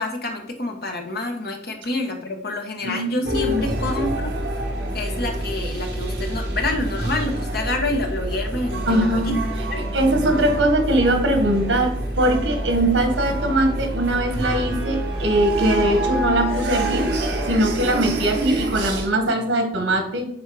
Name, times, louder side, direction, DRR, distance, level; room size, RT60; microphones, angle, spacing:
voice 1, 0.0-4.3 4.9-9.3 9.7-9.8, left 2 dB, 55° left, 3 dB, 1.4 m, -27 dB
voice 2, 2.8-3.6 8.9-9.3 9.8-17.1 17.5-20.3, right 1 dB, 85° right, 5 dB, 1.7 m, -21 dB
sound 1, 3.2-19.1, right 1 dB, 65° right, 1.7 m, -26 dB
7.3 x 4.4 x 4.9 m, 0.70 s
head